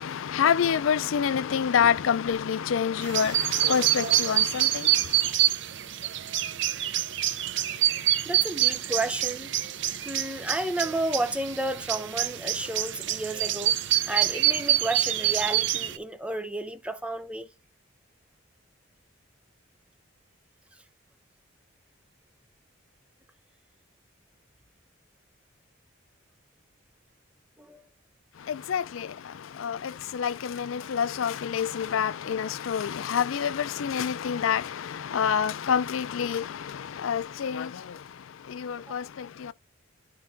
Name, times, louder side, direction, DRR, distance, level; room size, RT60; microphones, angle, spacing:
voice 1, 0.0-4.9 28.5-29.1 29.6-37.7 38.5-39.5, left 7 dB, 75° left, 0.4 m, -27 dB
sound 1, 3.0-16.0, right 13 dB, 60° right, 0.7 m, -26 dB
voice 2, 8.2-9.5 10.0-13.8 14.1-17.5 27.6-27.8 38.9-39.0, right 1 dB, 5° right, 0.6 m, -32 dB
11.0 x 4.6 x 2.7 m
head